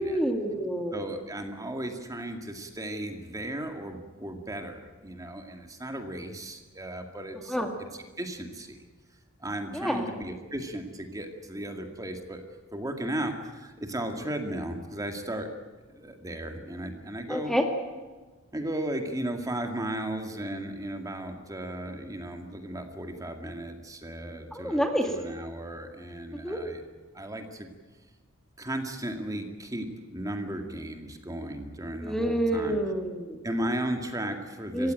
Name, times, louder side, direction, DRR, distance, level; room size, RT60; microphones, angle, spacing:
voice 1, 0.0-1.0 7.5-7.7 9.7-10.1 17.3-17.6 24.5-25.1 26.4-26.6 32.0-33.4 34.7-34.9, equal, ahead, 4 dB, 2.0 m, -28 dB
voice 2, 0.9-7.6 7.9-8.8 9.4-12.4 12.7-15.5 15.9-17.6 18.5-26.8 27.1-27.7 28.6-32.8 33.4-34.9, right 1 dB, 15° right, 5 dB, 2.1 m, -35 dB
27.0 x 16.0 x 9.2 m, 1.3 s
head